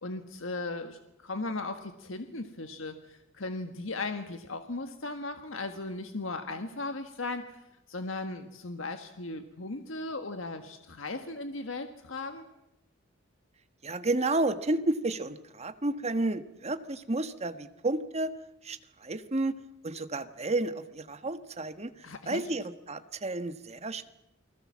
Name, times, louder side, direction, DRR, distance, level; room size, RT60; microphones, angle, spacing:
voice 1, 0.0-7.6 7.9-12.5 22.0-22.4, left 2 dB, 75° left, 7 dB, 1.6 m, -37 dB
voice 2, 13.8-18.3 18.6-19.6 19.8-21.9 22.2-24.1, right 2 dB, 35° right, 10 dB, 1.3 m, -31 dB
29.0 x 20.5 x 7.4 m, 0.86 s
head